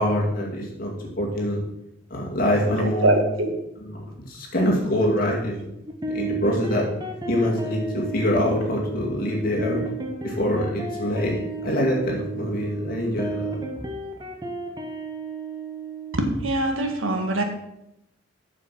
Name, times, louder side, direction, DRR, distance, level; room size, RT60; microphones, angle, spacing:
voice 1, 0.0-1.6 2.1-3.2 3.8-3.9 4.3-5.6 6.0-6.9 7.3-9.8 10.2-13.6, left 1 dB, 45° left, -2 dB, 2.3 m, -24 dB
voice 2, 2.7-3.5 16.1-17.4, right 2 dB, 90° right, 4 dB, 1.6 m, -23 dB
sound 1, 5.9-16.2, right 3 dB, 20° right, 1.0 m, -33 dB
7.2 x 7.0 x 5.9 m, 0.85 s
head